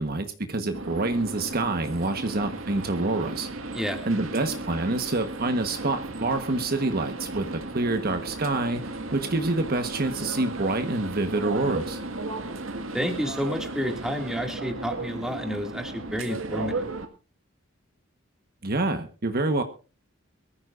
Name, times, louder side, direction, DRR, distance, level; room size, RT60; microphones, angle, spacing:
voice 1, 0.0-3.5 4.0-8.8 9.1-12.0 18.6-19.6, right 2 dB, 50° right, 7 dB, 1.3 m, -27 dB
sound 1, 0.7-17.1, right 2 dB, 90° right, 1.8 m, -35 dB
voice 2, 12.9-16.9, equal, 5° right, 3 dB, 2.3 m, -30 dB
23.0 x 14.0 x 2.6 m, 0.33 s
head